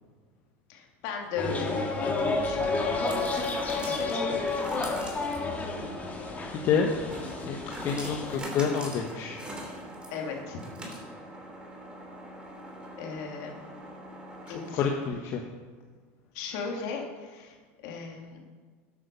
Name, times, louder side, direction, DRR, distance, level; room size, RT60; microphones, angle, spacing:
voice 1, 0.7-2.7 3.9-4.2 10.1-10.6 13.0-13.7 14.5-14.9 16.3-17.6 17.8-18.4, left 5 dB, 65° left, 1 dB, 2.7 m, -36 dB
sound 1, 1.2-15.2, right 1 dB, 15° right, 3.0 m, -43 dB
sound 2, 1.4-8.4, left 3 dB, 20° left, 2.1 m, -31 dB
voice 2, 6.5-6.9 7.5-7.6 7.8-9.4 14.7-15.4, left 6 dB, 50° left, 2 dB, 1.2 m, -28 dB
12.0 x 8.6 x 5.4 m, 1.5 s
supercardioid pair, 120°, 7 cm